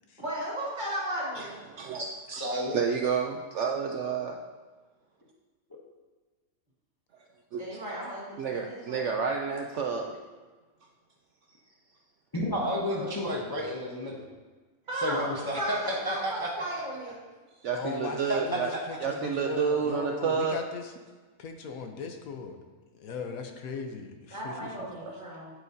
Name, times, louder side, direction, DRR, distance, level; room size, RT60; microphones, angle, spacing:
voice 1, 0.2-1.6 7.6-9.0 12.5-13.1 14.9-17.1 24.3-25.5, right 1 dB, 30° right, -5 dB, 2.2 m, -35 dB
voice 2, 1.4-2.1 2.7-4.4 7.5-7.8 8.4-10.2 17.6-18.7 19.0-20.6 25.0-25.2, right 5 dB, 65° right, 2 dB, 0.8 m, -30 dB
voice 3, 2.3-2.8 12.3-14.2 15.0-16.5 18.3-18.6, equal, 20° left, -3 dB, 0.8 m, -31 dB
voice 4, 17.7-20.9 21.4-22.6 23.0-24.5, left 5 dB, 75° left, 5 dB, 1.2 m, -38 dB
8.8 x 8.1 x 2.7 m, 1.3 s
omnidirectional pair, 1.5 m